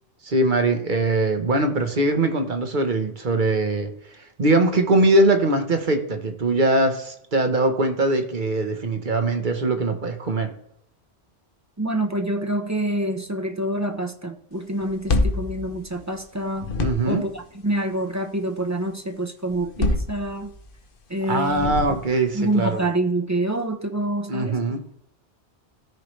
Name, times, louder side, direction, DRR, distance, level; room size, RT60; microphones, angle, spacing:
voice 1, 0.2-3.9 4.4-10.5 16.8-17.2 21.3-22.8 24.3-24.9, right 2 dB, 50° right, 6 dB, 1.3 m, -21 dB
voice 2, 11.8-16.7 17.0-20.5 21.1-21.8 22.3-24.6, right 1 dB, 15° right, 5 dB, 0.8 m, -26 dB
sound 1, 14.8-16.3 16.6-17.3 19.5-20.7 21.5-22.3, left 2 dB, 60° left, 1.0 m, -26 dB
14.0 x 4.7 x 3.2 m, 0.71 s
omnidirectional pair, 1.1 m